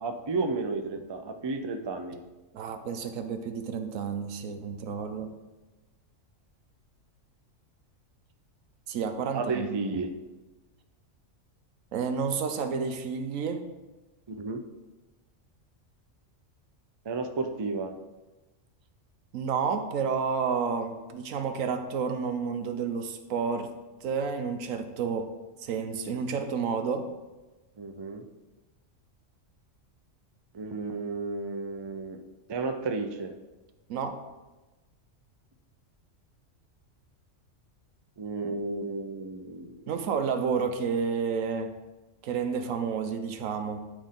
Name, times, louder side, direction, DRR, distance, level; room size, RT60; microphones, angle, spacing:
voice 1, 0.0-2.2 9.3-10.1 14.3-14.6 17.1-17.9 27.8-28.2 30.5-32.2 32.5-33.3 38.2-39.8, right 3 dB, 40° right, 6 dB, 0.4 m, -32 dB
voice 2, 2.5-5.3 8.9-9.8 11.9-13.7 19.3-23.7 24.0-27.1 33.9-34.2 39.9-41.8 42.2-43.9, right 6 dB, 90° right, 8 dB, 1.1 m, -30 dB
11.5 x 4.4 x 3.7 m, 1.1 s
omnidirectional pair, 1.3 m